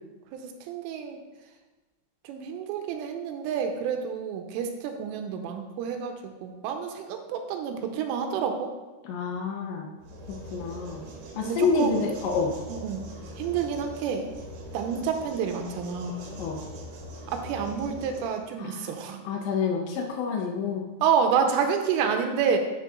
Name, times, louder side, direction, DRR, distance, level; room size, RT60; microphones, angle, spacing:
voice 1, 0.3-1.2 2.2-8.7 11.4-12.0 12.7-13.1 13.4-14.3 14.7-16.2 17.3-19.3 21.0-22.6, right 7 dB, 90° right, 5 dB, 3.2 m, -29 dB
voice 2, 9.1-9.9 10.5-11.0 11.4-12.6 16.4-16.6 18.6-18.9 19.3-20.9, left 4 dB, 80° left, 1 dB, 2.8 m, -28 dB
sound 1, 10.0-18.4, right 1 dB, 70° right, 2.7 m, -42 dB
11.0 x 5.9 x 2.4 m, 1.2 s
omnidirectional pair, 5.6 m